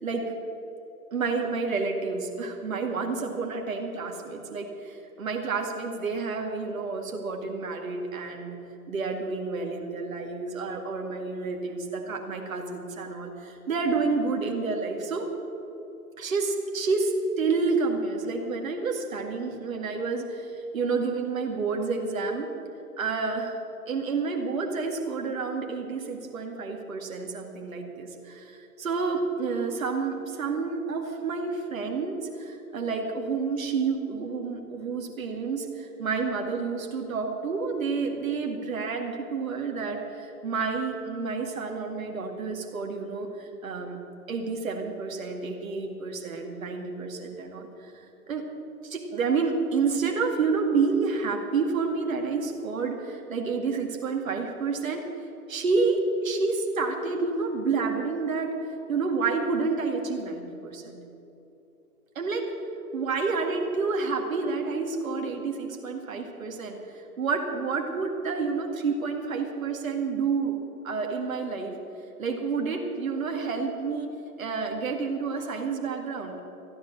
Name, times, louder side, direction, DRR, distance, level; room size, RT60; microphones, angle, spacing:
voice 1, 1.1-8.6 8.9-15.3 16.2-22.5 23.0-23.6 23.9-44.0 44.3-47.9 48.3-48.5 48.8-55.0 55.5-58.5 58.9-61.0 62.2-62.5 62.9-70.6 70.8-71.7 72.2-74.1 74.4-76.4, right 4 dB, 60° right, 2 dB, 2.2 m, -29 dB
13.5 x 10.0 x 7.3 m, 3.0 s
hypercardioid pair, 150°, 46 cm